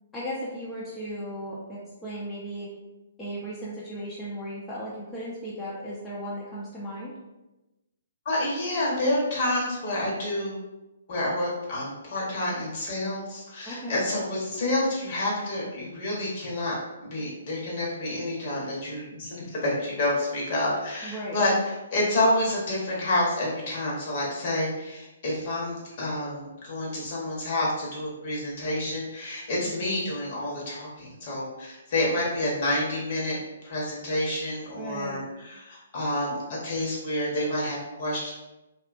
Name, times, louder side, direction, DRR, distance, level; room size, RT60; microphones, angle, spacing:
voice 1, 0.1-2.7 3.2-7.1 13.7-14.0 21.0-21.4 29.6-29.9 34.8-35.2, equal, 10° left, -8 dB, 0.5 m, -36 dB
voice 2, 8.2-10.6 11.1-38.3, left 1 dB, 45° left, -5 dB, 1.0 m, -28 dB
2.6 x 2.3 x 2.4 m, 1.0 s
figure-of-eight pair, 130°, 0 cm